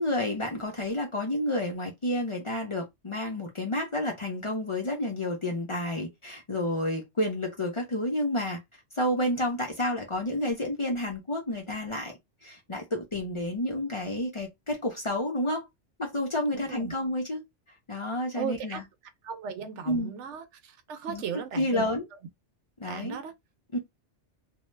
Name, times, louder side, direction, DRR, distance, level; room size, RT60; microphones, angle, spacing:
voice 1, 0.0-8.6 8.9-12.1 12.4-15.7 16.0-17.4 17.9-18.8 19.9-20.1 21.1-22.1 22.8-23.2 23.7-23.8, left 1 dB, 35° left, 0.6 m, -30 dB
voice 2, 16.5-16.9 18.3-18.8 19.2-21.9 22.8-23.3, right 7 dB, 80° right, 1.0 m, -36 dB
2.7 x 2.1 x 3.1 m
omnidirectional pair, 1.2 m